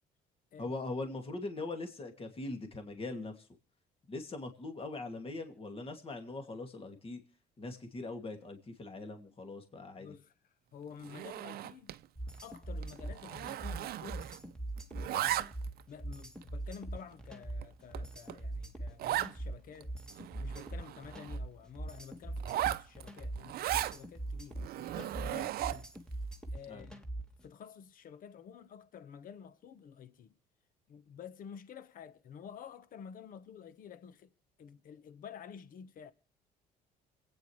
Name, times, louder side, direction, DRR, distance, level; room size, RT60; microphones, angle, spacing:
voice 1, 0.6-3.5 4.1-7.2 7.6-10.1 25.3-25.5 26.7-26.9, left 2 dB, 35° left, 2.5 m, -41 dB
voice 2, 10.0-10.3 10.7-11.9 12.4-14.3 15.0-15.4 15.9-19.9 20.4-25.5 25.7-25.9 26.5-27.0 27.4-30.3 30.9-34.3 34.6-36.1, left 7 dB, 55° left, 1.2 m, -50 dB
Zipper (clothing), 11.0-12.0 12.3-12.6 12.8-14.5 14.8-15.8 16.4-16.5 17.1-17.2 17.6-17.7 17.9-18.0 18.3-18.4 19.0-19.3 19.8-19.9 20.1-21.4 22.4-24.0 24.6-26.0, right 13 dB, 65° right, 0.6 m, -36 dB
sound 1, 12.2-27.4, right 2 dB, 5° left, 1.8 m, -41 dB
27.5 x 9.3 x 3.2 m
cardioid pair, 110°, 17 cm